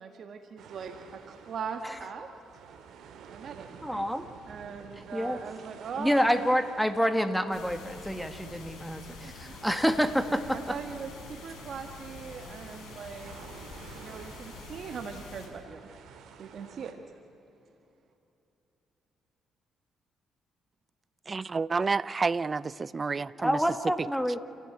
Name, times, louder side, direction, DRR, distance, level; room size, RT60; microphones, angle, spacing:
voice 1, 0.0-2.3 3.3-4.0 4.5-6.2 9.2-9.5 10.5-13.4 13.9-15.8 16.4-17.0, right 6 dB, 60° right, 6 dB, 1.6 m, -40 dB
sound 1, 0.6-16.9, right 7 dB, 75° right, 2.3 m, -52 dB
voice 2, 3.8-4.2 5.1-5.4 6.0-10.8 23.4-24.4, equal, ahead, 9 dB, 1.9 m, -28 dB
sound 2, 7.5-15.5, left 4 dB, 75° left, 5.6 m, -46 dB
voice 3, 21.3-23.6, right 4 dB, 30° right, 19 dB, 0.6 m, -29 dB
28.0 x 16.5 x 9.3 m, 2.9 s
cardioid pair, 90°, 0 cm